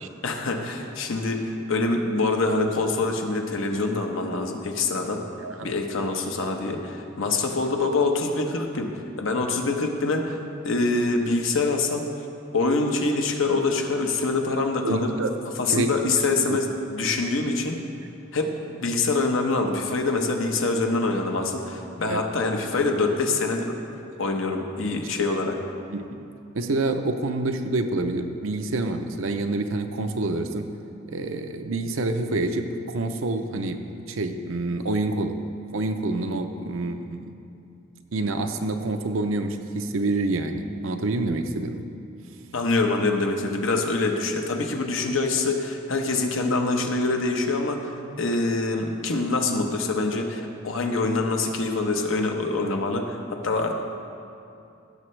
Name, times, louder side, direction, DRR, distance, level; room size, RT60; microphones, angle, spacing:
voice 1, 0.2-5.2 5.6-10.4 10.6-12.1 12.5-15.1 15.6-17.8 18.3-23.8 24.2-25.5 42.5-53.8, left 3 dB, 70° left, 3 dB, 0.9 m, -25 dB
voice 2, 5.4-5.7 14.8-15.3 15.7-15.9 16.5-16.6 22.0-22.3 25.9-26.3 26.5-30.7 31.1-35.4 35.7-37.3 38.1-41.8, right 2 dB, 70° right, 7 dB, 0.6 m, -27 dB
16.0 x 6.8 x 3.2 m, 2.6 s
head